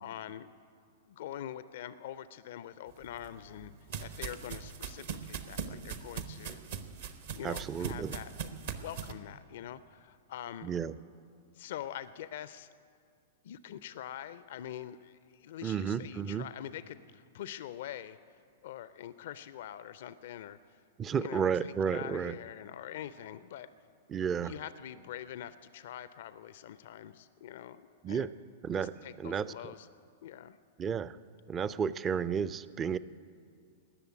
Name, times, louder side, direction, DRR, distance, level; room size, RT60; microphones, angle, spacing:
voice 1, 0.0-0.5 1.1-3.7 4.0-6.6 7.3-10.7 11.5-12.7 13.4-18.2 18.6-20.8 21.2-23.7 24.4-28.3 28.7-29.9 30.2-30.6, left 11 dB, 55° left, 15 dB, 0.4 m, -44 dB
sound 1, 3.0-9.1, right 7 dB, 55° right, 0.9 m, -41 dB
voice 2, 7.4-8.1 10.6-11.0 15.6-16.5 21.0-22.4 24.1-24.5 28.0-28.3 28.6-29.5 30.8-31.2 31.5-33.0, right 7 dB, 20° right, 17 dB, 0.4 m, -32 dB
18.5 x 6.8 x 9.3 m, 2.3 s
figure-of-eight pair, 100°, 0 cm